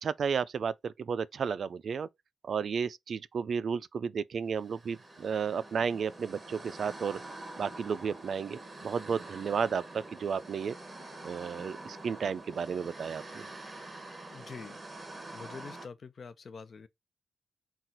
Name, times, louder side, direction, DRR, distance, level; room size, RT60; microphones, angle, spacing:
voice 1, 0.0-2.1 2.4-7.2 7.6-10.7 11.2-13.4, right 6 dB, 55° right, 0.3 m, -33 dB
sound 1, 4.6-15.9, right 2 dB, 20° right, 0.9 m, -46 dB
voice 2, 14.3-15.0 15.3-16.9, left 5 dB, 45° left, 0.5 m, -46 dB
5.9 x 2.4 x 3.9 m
wide cardioid pair, 165°, 0 cm